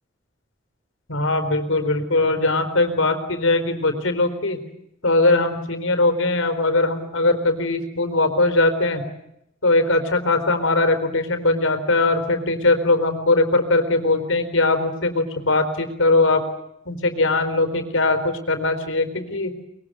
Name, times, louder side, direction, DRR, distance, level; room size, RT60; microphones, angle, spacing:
voice 1, 1.1-4.6 5.0-9.0 9.6-16.4 16.9-19.5, left 2 dB, 85° left, 8 dB, 4.3 m, -20 dB
24.5 x 22.5 x 9.4 m, 0.79 s
head